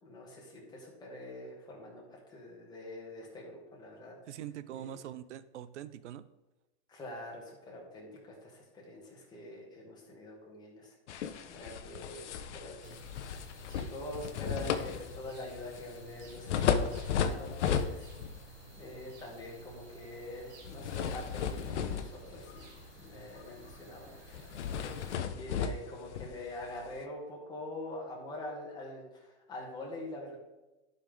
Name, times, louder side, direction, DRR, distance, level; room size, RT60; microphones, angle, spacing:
voice 1, 0.0-4.2 4.7-4.9 6.9-10.9 11.5-13.0 13.7-18.1 18.4-25.0 25.3-30.4, left 1 dB, 10° left, -3 dB, 2.1 m, -45 dB
voice 2, 4.3-6.3, right 11 dB, 85° right, 15 dB, 0.6 m, -43 dB
sound 1, 11.1-18.4 18.8-19.1 20.6-22.9 23.2-23.4 23.7-23.8 24.3-27.0, left 7 dB, 85° left, 0.8 m, -35 dB
sound 2, 12.8-25.2, right 2 dB, 35° right, 1.3 m, -53 dB
11.5 x 5.4 x 3.8 m, 1.1 s
supercardioid pair, 150°, 34 cm